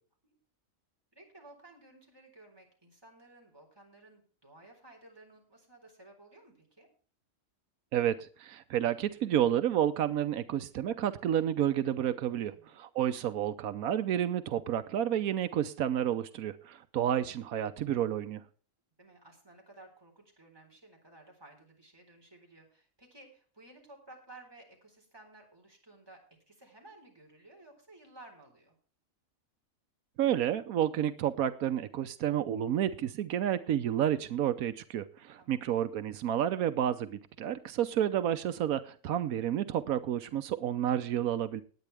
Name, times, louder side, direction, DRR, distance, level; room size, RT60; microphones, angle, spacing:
voice 1, 1.1-6.9 12.5-12.8 19.0-28.8 35.4-35.7, right 2 dB, 15° right, 0 dB, 4.1 m, -56 dB
voice 2, 7.9-18.4 30.2-41.6, right 10 dB, 90° right, 11 dB, 1.2 m, -30 dB
19.0 x 8.9 x 3.4 m, 0.40 s
omnidirectional pair, 1.4 m